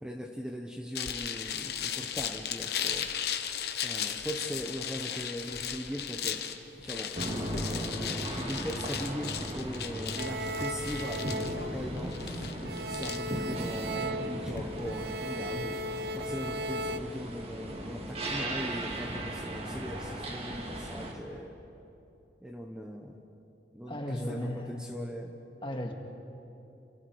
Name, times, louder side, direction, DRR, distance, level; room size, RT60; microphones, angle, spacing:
voice 1, 0.0-3.1 3.8-6.4 6.8-7.4 7.7-15.8 16.1-21.6 22.4-23.2 23.7-25.3, equal, 5° right, 2 dB, 1.1 m, -40 dB
sound 1, 0.9-14.9, left 8 dB, 60° left, 1.2 m, -37 dB
sound 2, 7.1-21.1, right 1 dB, 35° right, 2.3 m, -37 dB
sound 3, 10.2-12.3 12.6-17.0, right 1 dB, 60° right, 0.7 m, -37 dB
voice 2, 23.9-24.8 25.6-25.9, equal, 30° left, 2 dB, 2.1 m, -35 dB
29.0 x 28.0 x 4.8 m, 2.9 s
head